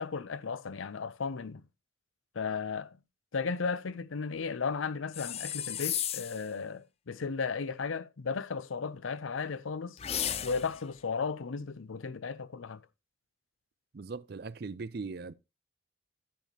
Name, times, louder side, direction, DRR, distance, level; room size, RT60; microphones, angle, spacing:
voice 1, 0.0-1.6 2.3-3.0 3.3-10.0 10.4-12.8, left 5 dB, 90° left, 0.6 m, -35 dB
sound 1, 5.1-6.5 10.0-10.8, left 10 dB, 30° left, 0.4 m, -34 dB
voice 2, 13.9-15.3, right 4 dB, 50° right, 0.5 m, -39 dB
10.5 x 8.3 x 2.9 m
head